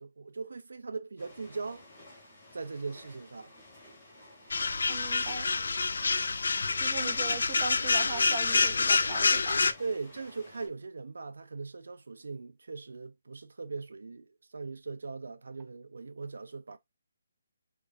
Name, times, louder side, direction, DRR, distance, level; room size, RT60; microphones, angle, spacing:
voice 1, 0.0-1.9 2.2-3.5 6.3-6.5 9.8-16.8, right 4 dB, 80° right, 0.7 m, -40 dB
sound 1, 1.2-10.7, left 1 dB, 15° left, 2.5 m, -54 dB
sound 2, 4.5-9.7, left 4 dB, 70° left, 0.5 m, -27 dB
voice 2, 4.9-5.5 6.8-9.6, right 5 dB, 20° right, 0.8 m, -39 dB
4.8 x 3.5 x 2.6 m
hypercardioid pair, 175°, 0 cm